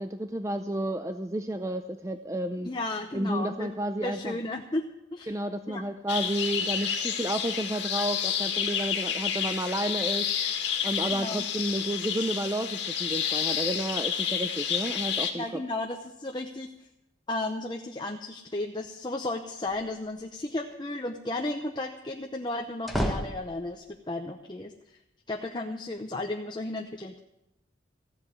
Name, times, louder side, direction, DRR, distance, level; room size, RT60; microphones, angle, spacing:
voice 1, 0.0-2.7 3.1-4.4 5.3-15.6, right 1 dB, 15° right, 8 dB, 0.5 m, -31 dB
voice 2, 2.6-3.7 4.0-4.8 5.1-5.8 11.1-11.5 15.3-16.7 17.3-25.0 25.3-27.2, left 2 dB, 25° left, 3 dB, 0.7 m, -34 dB
sound 1, 6.1-15.3, left 8 dB, 70° left, 1.9 m, -30 dB
sound 2, 19.7-20.2 22.4-24.0, equal, ahead, 1.3 m, -32 dB
15.0 x 7.9 x 9.6 m, 0.89 s
head